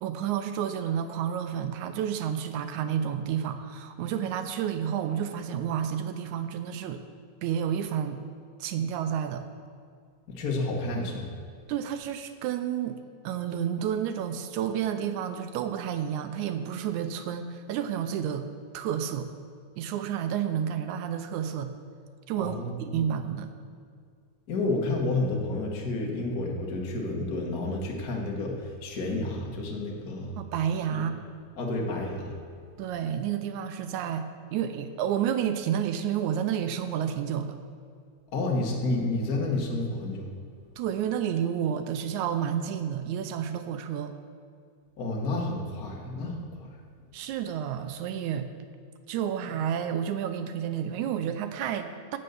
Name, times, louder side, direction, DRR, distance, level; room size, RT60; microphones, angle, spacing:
voice 1, 0.0-7.0 7.4-8.2 8.6-9.4 11.7-13.0 13.2-18.5 18.7-19.3 19.8-21.7 22.3-23.5 30.4-31.2 32.8-37.6 40.8-44.1 47.1-48.5 49.1-52.2, right 9 dB, 80° right, 8 dB, 2.0 m, -30 dB
voice 2, 10.3-11.3 22.4-23.2 24.5-30.3 30.9-31.0 31.6-32.3 38.3-40.3 45.0-46.8, left 2 dB, 50° left, -1 dB, 1.1 m, -30 dB
12.0 x 5.4 x 8.0 m, 2.2 s
omnidirectional pair, 3.5 m